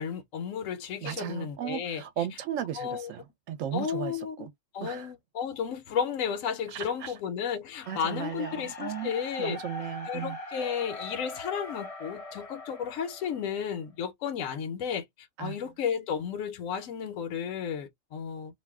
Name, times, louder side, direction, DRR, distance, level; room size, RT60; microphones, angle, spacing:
voice 1, 0.0-2.3 2.7-3.1 3.7-4.5 4.7-9.6 10.0-18.5, left 7 dB, 75° left, 1.0 m, -33 dB
voice 2, 1.0-4.1 4.4-4.5 4.8-5.1 6.7-7.1 7.9-9.1 9.4-10.4 15.4-15.5, right 10 dB, 75° right, 0.9 m, -35 dB
sound 1, 7.7-13.9, left 2 dB, 35° left, 0.6 m, -42 dB
2.6 x 2.1 x 3.3 m
omnidirectional pair, 1.4 m